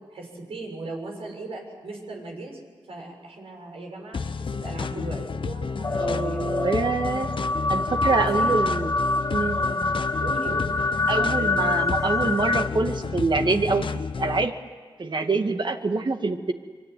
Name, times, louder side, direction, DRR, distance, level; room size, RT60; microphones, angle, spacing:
voice 1, 0.1-2.6 2.9-6.7 8.0-8.6 9.5-9.8 10.2-10.7 15.3-15.5, right 2 dB, 85° right, 0 dB, 7.1 m, -37 dB
sound 1, 4.1-14.5, left 5 dB, 65° left, 0.9 m, -31 dB
sound 2, 5.8-12.7, left 2 dB, 30° left, 0.8 m, -26 dB
voice 2, 6.0-7.3 7.7-8.9 9.3-9.6 11.1-13.9 14.2-14.5 15.0-16.5, right 3 dB, 55° right, 5 dB, 2.3 m, -25 dB
25.0 x 25.0 x 9.6 m, 1.5 s
cardioid pair, 60°, 10 cm